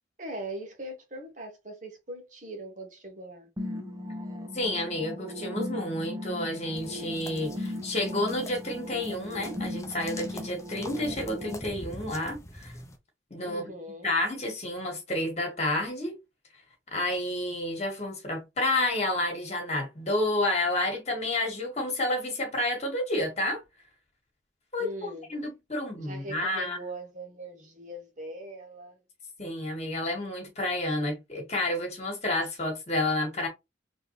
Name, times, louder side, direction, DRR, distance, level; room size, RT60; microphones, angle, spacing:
voice 1, 0.2-3.5 13.4-14.1 24.8-25.3 25.9-29.0, right 1 dB, 40° right, 1.6 m, -41 dB
sound 1, 3.6-11.5, left 1 dB, 20° right, 0.7 m, -37 dB
voice 2, 4.5-12.7 13.3-13.7 14.0-16.2 16.9-23.6 24.7-26.8 29.4-33.5, left 1 dB, 35° left, 2.0 m, -30 dB
sound 2, 6.8-13.0, left 1 dB, 15° left, 0.8 m, -45 dB
4.4 x 3.3 x 3.3 m
head